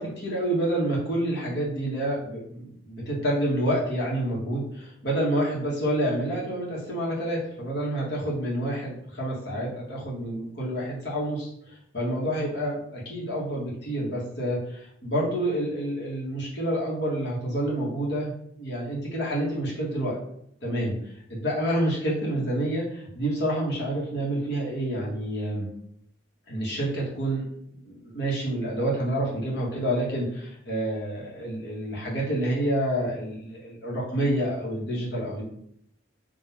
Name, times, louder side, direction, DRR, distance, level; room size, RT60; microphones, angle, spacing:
voice 1, 0.0-20.2 20.6-25.7 26.5-27.4 27.7-35.4, right 1 dB, 60° left, -5 dB, 1.5 m, -28 dB
3.9 x 2.8 x 4.3 m, 0.72 s
head